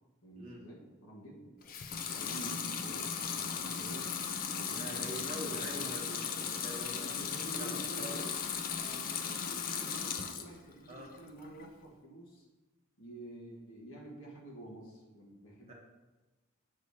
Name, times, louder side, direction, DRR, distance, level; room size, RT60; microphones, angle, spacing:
voice 1, 0.2-1.5 2.0-4.1 4.4-6.0 7.0-8.3 8.7-12.5 13.0-15.7, right 1 dB, 70° left, -2 dB, 1.4 m, -49 dB
Water tap faucet / Sink (filling or washing) / Liquid, 1.6-10.6 11.0-11.7, left 6 dB, 40° left, 0.4 m, -37 dB
voice 2, 4.7-7.2 7.5-8.2 10.9-11.1 15.7-15.8, right 1 dB, 30° right, -2 dB, 1.1 m, -44 dB
7.9 x 4.8 x 2.8 m, 1.1 s
head